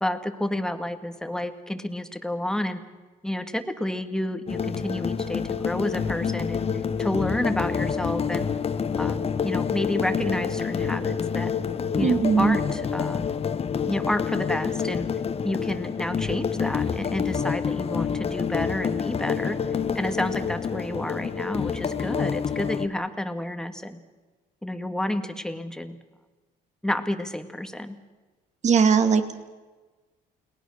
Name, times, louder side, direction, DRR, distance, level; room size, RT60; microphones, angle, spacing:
voice 1, 0.0-2.8 3.2-6.7 7.0-8.5 9.0-11.5 11.9-13.3 13.9-15.1 15.4-19.6 20.0-24.0 24.6-26.0 26.8-28.0, left 1 dB, 5° left, 8 dB, 1.9 m, -30 dB
sound 1, 4.5-22.9, left 6 dB, 35° left, 1.4 m, -27 dB
voice 2, 12.0-12.6 28.6-29.4, right 6 dB, 45° right, 9 dB, 2.4 m, -20 dB
30.0 x 20.0 x 6.6 m, 1.3 s
cardioid pair, 110°, 17 cm